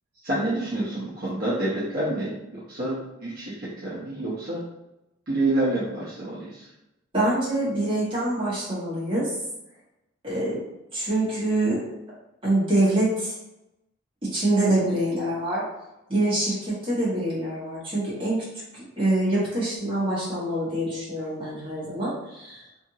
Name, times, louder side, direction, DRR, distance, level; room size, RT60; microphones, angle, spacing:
voice 1, 0.2-2.9 3.2-4.6 5.3-6.7, right 1 dB, 45° right, -9 dB, 0.7 m, -28 dB
voice 2, 7.1-9.3 10.2-10.6 10.9-11.8 12.4-13.3 14.3-15.6 16.1-18.4 18.7-22.6, right 1 dB, 25° right, -8 dB, 1.2 m, -25 dB
2.7 x 2.5 x 2.7 m, 0.92 s
head